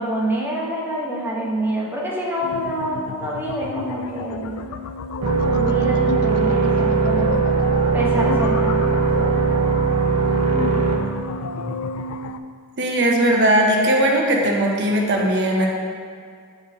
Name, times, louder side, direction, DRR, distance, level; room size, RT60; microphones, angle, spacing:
voice 1, 0.0-4.6 5.5-7.4 7.9-9.3, right 1 dB, 10° right, -5 dB, 1.1 m, -27 dB
sound 1, 2.4-12.4, left 4 dB, 65° left, 0.3 m, -31 dB
sound 2, 5.2-11.0, right 4 dB, 80° right, 0.8 m, -19 dB
voice 2, 12.8-15.7, right 1 dB, 50° right, 0 dB, 0.9 m, -19 dB
6.0 x 5.0 x 4.2 m, 2.1 s
head